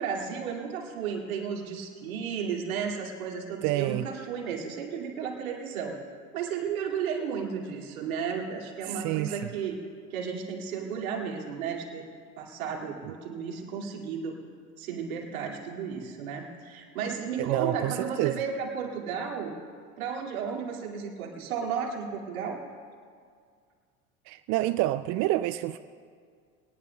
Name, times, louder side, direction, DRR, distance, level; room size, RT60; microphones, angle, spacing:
voice 1, 0.0-6.0 6.3-9.8 10.1-12.1 12.4-14.4 14.8-19.6 20.0-22.6, right 6 dB, 75° right, 2.4 m, -33 dB
voice 2, 3.6-4.1 8.9-9.4 17.4-18.3 24.3-25.8, right 16 dB, 45° right, 0.5 m, -28 dB
21.5 x 18.5 x 2.3 m
hypercardioid pair, 80°, 42 cm